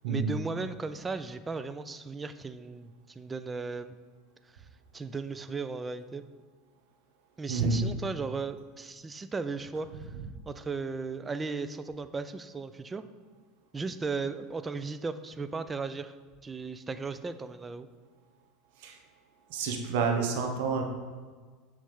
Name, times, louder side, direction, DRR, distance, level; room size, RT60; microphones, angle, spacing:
voice 1, 0.1-4.0 4.5-4.7 4.9-6.2 7.4-10.2 10.5-13.0 13.7-16.1 16.4-17.9, right 4 dB, 20° right, 12 dB, 0.4 m, -36 dB
voice 2, 7.5-7.8 18.8-19.0 19.5-20.8, right 5 dB, 70° right, 3 dB, 0.9 m, -28 dB
7.2 x 3.3 x 5.5 m, 1.5 s
hypercardioid pair, 90°, 0 cm